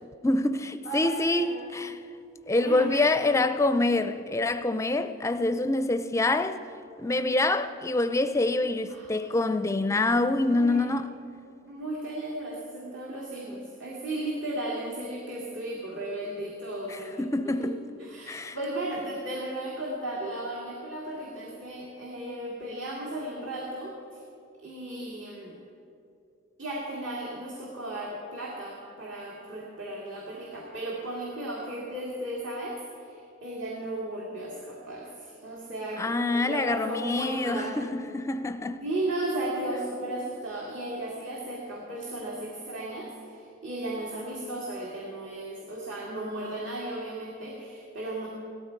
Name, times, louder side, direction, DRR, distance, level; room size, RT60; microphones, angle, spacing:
voice 1, 0.2-2.0 2.5-6.6 7.0-11.1 17.2-17.8 18.3-18.6 36.0-38.8, left 2 dB, 15° left, 0.5 m, -26 dB
voice 2, 0.8-1.8 2.5-3.4 8.9-9.3 10.4-10.9 11.7-17.7 18.0-24.0 24.6-25.6 26.6-37.8 38.8-48.3, right 1 dB, 60° right, 2.2 m, -35 dB
17.5 x 13.5 x 4.5 m
head